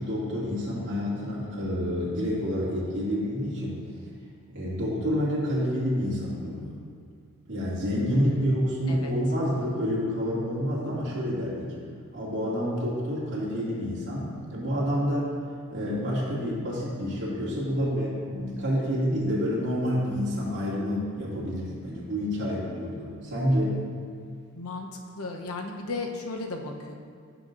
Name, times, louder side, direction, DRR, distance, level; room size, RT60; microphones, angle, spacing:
voice 1, 0.0-3.8 4.5-6.8 7.5-11.7 12.1-15.3 15.7-23.8, equal, 55° right, -9 dB, 2.3 m, -28 dB
voice 2, 8.1-9.1 24.5-24.9 25.2-26.9, left 3 dB, 80° left, 2 dB, 0.9 m, -35 dB
15.0 x 6.1 x 2.6 m, 2.3 s
head